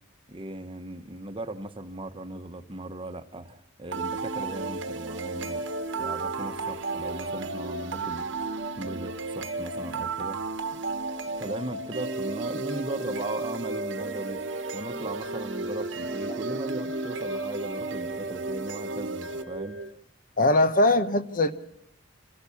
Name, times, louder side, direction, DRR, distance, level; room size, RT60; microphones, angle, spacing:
voice 1, 0.3-5.7 6.0-10.4 11.4-14.4 14.7-19.8, right 1 dB, 25° right, 7 dB, 1.1 m, -38 dB
sound 1, 3.9-19.9, right 3 dB, 65° right, 1.2 m, -33 dB
voice 2, 20.4-21.5, left 2 dB, 45° left, 10 dB, 1.0 m, -21 dB
27.0 x 17.0 x 7.1 m, 0.74 s
head